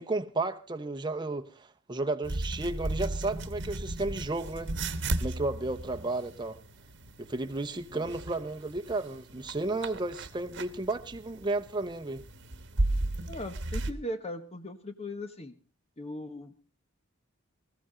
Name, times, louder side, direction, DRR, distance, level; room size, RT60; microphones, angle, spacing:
voice 1, 0.0-4.7 5.2-6.6 7.2-12.2, right 2 dB, 20° right, 0.9 m, -33 dB
sound 1, 2.2-13.9, right 2 dB, 60° right, 1.2 m, -35 dB
voice 2, 13.3-15.5 16.0-16.6, left 1 dB, 30° left, 1.1 m, -39 dB
19.5 x 15.0 x 3.8 m
head